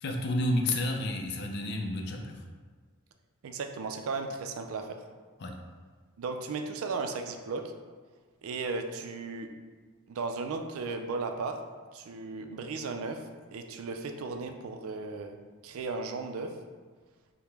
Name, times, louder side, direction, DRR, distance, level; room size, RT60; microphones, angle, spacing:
voice 1, 0.0-2.4 5.4-5.6, left 1 dB, 50° left, 3 dB, 0.4 m, -30 dB
voice 2, 3.4-5.0 6.2-7.7 8.4-9.5 10.1-11.6 11.9-15.4 15.6-16.5, right 4 dB, 85° right, 5 dB, 0.4 m, -35 dB
4.7 x 2.1 x 3.3 m, 1.5 s
head